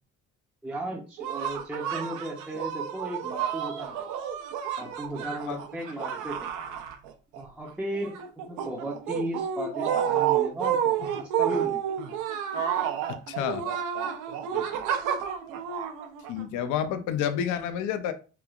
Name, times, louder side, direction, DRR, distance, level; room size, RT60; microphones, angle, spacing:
voice 1, 0.6-4.0 4.8-6.5 7.4-11.8 14.5-14.8, right 1 dB, 5° right, 0.5 m, -36 dB
sound 1, 1.2-7.4 7.7-16.6, right 9 dB, 85° right, 0.5 m, -30 dB
voice 2, 13.1-13.6 16.3-18.1, left 9 dB, 80° left, 0.5 m, -29 dB
3.1 x 2.2 x 2.3 m
cardioid pair, 100°, 30 cm